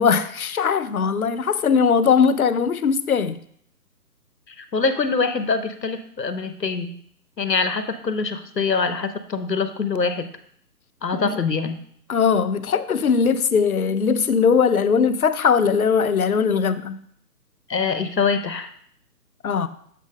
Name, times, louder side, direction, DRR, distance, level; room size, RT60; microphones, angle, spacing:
voice 1, 0.0-3.4 11.2-11.4 12.1-17.0 19.4-19.7, left 6 dB, 60° left, 0.6 m, -20 dB
voice 2, 4.7-6.9 7.4-10.3 11.0-11.8 17.7-18.7, left 4 dB, 85° left, 0.9 m, -24 dB
7.4 x 5.1 x 3.7 m
figure-of-eight pair, 135°, 48 cm